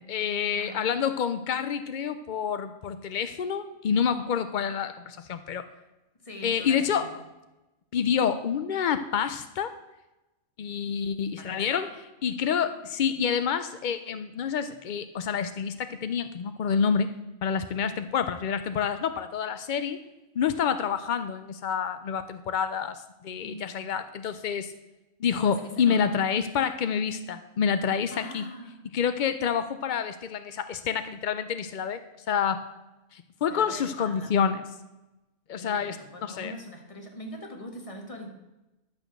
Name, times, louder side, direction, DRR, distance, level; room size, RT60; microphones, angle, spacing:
voice 1, 0.0-5.6 6.4-7.0 7.9-9.7 10.6-11.9 12.2-17.1 17.4-20.0 20.4-24.7 25.2-28.4 28.9-32.0 32.3-32.6 33.1-34.6 35.5-36.5, left 7 dB, 70° left, 11 dB, 0.4 m, -28 dB
voice 2, 6.2-7.2 11.4-11.9 23.4-23.9 25.3-26.2 28.1-28.8 33.5-34.3 35.5-38.3, left 1 dB, 25° left, 3 dB, 1.6 m, -42 dB
11.5 x 6.6 x 6.5 m, 1.0 s
omnidirectional pair, 1.4 m